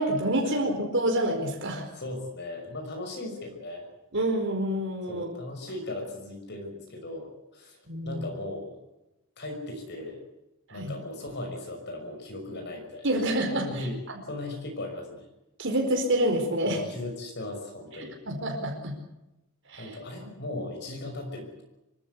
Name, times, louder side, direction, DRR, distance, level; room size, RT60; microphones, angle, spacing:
voice 1, 0.0-1.9 4.1-5.3 7.9-8.3 10.7-10.9 13.0-13.9 15.6-16.8 18.3-18.9 19.7-20.0, right 1 dB, 55° right, 2 dB, 4.6 m, -27 dB
voice 2, 1.9-3.9 5.1-7.8 8.0-8.7 9.4-10.2 10.7-13.1 13.5-14.0 14.3-15.2 16.6-18.2 19.8-21.6, left 2 dB, 50° left, 2 dB, 5.8 m, -37 dB
25.5 x 15.5 x 8.3 m, 0.93 s
head